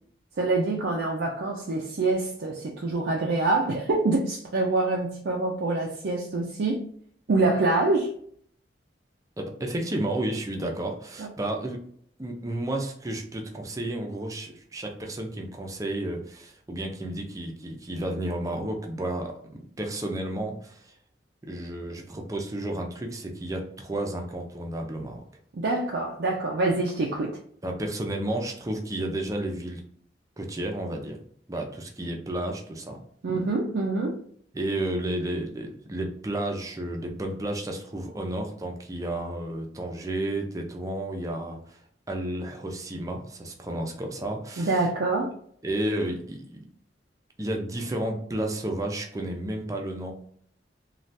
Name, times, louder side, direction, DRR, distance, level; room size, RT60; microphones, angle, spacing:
voice 1, 0.4-6.8 7.3-8.1 11.2-11.3 25.5-27.4 33.2-34.2 44.6-45.3, right 2 dB, 70° right, 0.4 m, -25 dB
voice 2, 9.4-11.8 12.2-20.9 21.4-25.2 27.6-29.8 30.4-31.2 31.5-33.0 34.5-41.8 42.1-44.9 45.6-46.7 47.4-50.1, right 1 dB, 20° right, 0.5 m, -32 dB
3.2 x 2.3 x 2.6 m
head